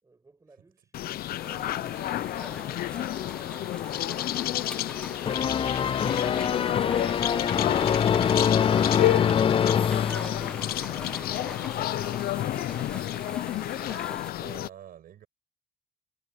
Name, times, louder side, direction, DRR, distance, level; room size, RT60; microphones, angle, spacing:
voice 1, 0.0-5.0, right 3 dB, 20° right, 5.4 m, -61 dB
sound 1, 0.9-14.7, left 14 dB, 65° left, 0.7 m, -30 dB
sound 2, 1.4-14.3, left 1 dB, 5° left, 1.3 m, -42 dB
sound 3, 5.3-10.9, left 8 dB, 35° left, 0.5 m, -24 dB
voice 2, 7.2-7.6 14.4-15.3, right 10 dB, 60° right, 6.6 m, -47 dB
cardioid pair, 110°, 17 cm